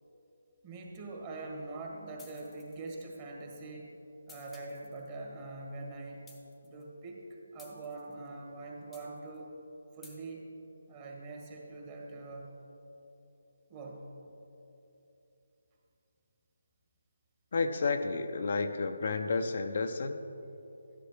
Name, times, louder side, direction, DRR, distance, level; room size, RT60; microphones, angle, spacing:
voice 1, 0.6-3.9 4.3-6.3 6.6-7.2 7.5-9.5 9.9-10.5 10.9-12.5 13.7-14.1, right 2 dB, 25° right, -1 dB, 1.6 m, -43 dB
sound 1, 2.2-3.2 4.3-5.1 6.3-6.8 7.6-8.3 8.9-9.4 10.0-10.2, left 3 dB, 5° left, 0.8 m, -56 dB
voice 2, 17.5-20.2, left 4 dB, 55° left, 7 dB, 0.5 m, -31 dB
12.0 x 10.0 x 3.2 m, 2.9 s
figure-of-eight pair, 160°, 0 cm